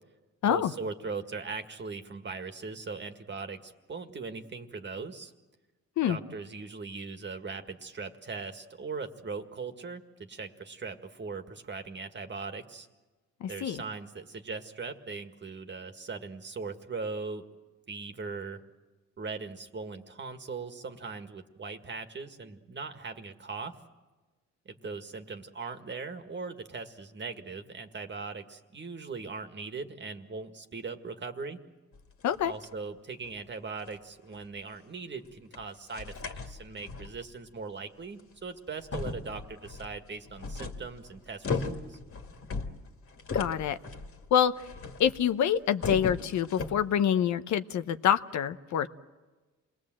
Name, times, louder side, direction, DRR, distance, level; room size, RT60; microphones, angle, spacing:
voice 1, 0.5-5.3 6.1-12.9 13.5-17.4 17.9-18.6 19.2-23.8 24.7-31.6 32.4-42.0, right 4 dB, 35° right, 7 dB, 1.9 m, -40 dB
voice 2, 13.4-13.8 32.2-32.5 43.3-43.8 44.3-44.5 45.0-48.9, left 9 dB, 70° left, 11 dB, 0.9 m, -26 dB
sound 1, 31.9-32.7 33.2-33.4 33.8-33.9 34.3-34.4 35.5-35.6 35.9-37.2 38.2-38.3 38.8-45.3 45.6-46.9, left 4 dB, 45° left, 2.1 m, -37 dB
28.5 x 20.5 x 7.7 m, 1.2 s
cardioid pair, 90°, 30 cm